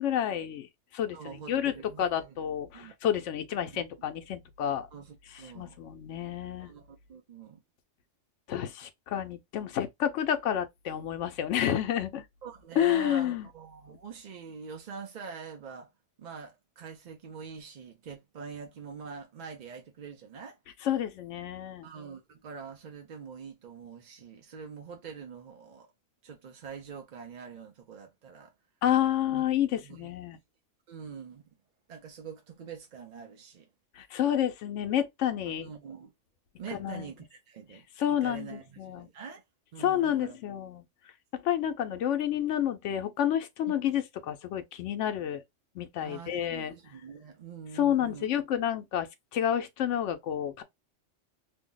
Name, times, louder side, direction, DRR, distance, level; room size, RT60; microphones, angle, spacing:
voice 1, 0.0-4.9 5.5-6.7 8.5-12.2 12.8-13.5 20.8-21.9 28.8-30.4 34.0-35.7 36.8-37.0 38.0-39.1 39.8-40.8 41.3-45.4 45.7-46.7 47.7-50.6, left 10 dB, 80° left, 0.9 m, -30 dB
voice 2, 1.1-2.4 2.7-2.9 3.7-3.8 4.9-5.8 6.6-7.6 12.4-15.9 16.2-20.6 21.8-25.9 26.2-28.5 29.3-29.5 29.8-30.1 30.9-31.4 31.9-33.7 35.6-36.1 36.6-39.4 39.7-40.4 46.0-48.3, right 6 dB, 55° right, 0.5 m, -45 dB
2.6 x 2.1 x 3.7 m
omnidirectional pair, 1.2 m